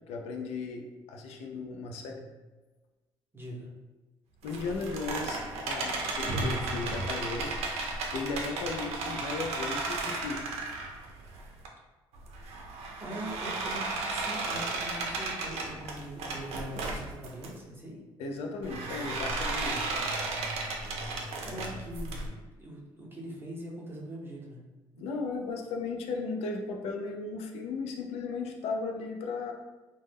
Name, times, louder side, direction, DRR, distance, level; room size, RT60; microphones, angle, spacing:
voice 1, 0.1-2.3 4.4-7.5 8.1-10.4 18.2-20.0 25.0-29.5, left 4 dB, 80° left, 3 dB, 0.4 m, -36 dB
voice 2, 3.3-3.7 12.7-18.0 21.4-24.6 24.9-25.0, right 1 dB, 20° right, -3 dB, 0.7 m, -42 dB
sound 1, 4.4-11.7 12.1-17.5 18.6-22.3, right 3 dB, 75° right, 0.5 m, -34 dB
2.1 x 2.1 x 3.3 m, 1.2 s
supercardioid pair, 70°, 11 cm